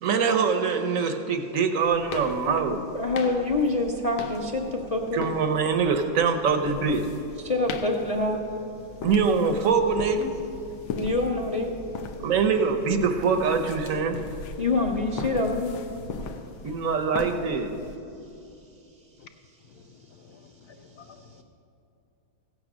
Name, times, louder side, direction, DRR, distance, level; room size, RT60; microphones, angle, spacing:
voice 1, 0.0-2.8 5.1-7.0 9.0-10.3 12.2-14.2 16.6-17.7, right 5 dB, 60° right, 7 dB, 0.9 m, -24 dB
sound 1, 1.8-18.0, left 4 dB, 85° left, 1.6 m, -39 dB
voice 2, 2.9-5.3 7.4-8.4 10.9-11.7 14.6-15.7, left 2 dB, 30° left, 1 dB, 0.6 m, -26 dB
voice 3, 20.7-21.4, left 5 dB, 65° left, 8 dB, 1.0 m, -50 dB
15.5 x 8.8 x 6.2 m, 2.9 s
omnidirectional pair, 2.2 m